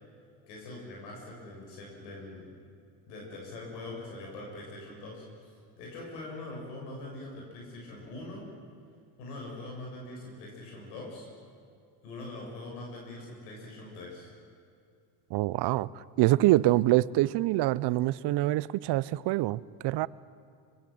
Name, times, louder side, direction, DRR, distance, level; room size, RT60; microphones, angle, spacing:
voice 1, 0.5-2.5 3.1-5.5 5.8-8.4 9.2-11.3 12.0-14.3, left 2 dB, 80° left, 7.3 m, -43 dB
voice 2, 15.3-20.1, right 17 dB, 55° right, 0.8 m, -25 dB
25.0 x 21.5 x 7.9 m
hypercardioid pair, 80°, 48 cm